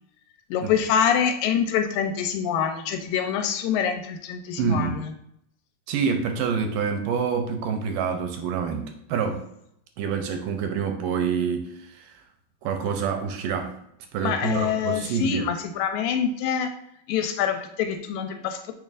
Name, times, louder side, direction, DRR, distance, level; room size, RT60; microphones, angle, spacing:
voice 1, 0.5-5.1 14.2-16.7 17.1-18.7, left 8 dB, 80° left, 6 dB, 2.2 m, -25 dB
voice 2, 4.6-5.0 5.9-9.4 10.0-12.2 12.6-13.8 14.1-15.5, right 6 dB, 80° right, 5 dB, 2.1 m, -27 dB
7.3 x 5.3 x 2.5 m, 0.73 s
omnidirectional pair, 4.1 m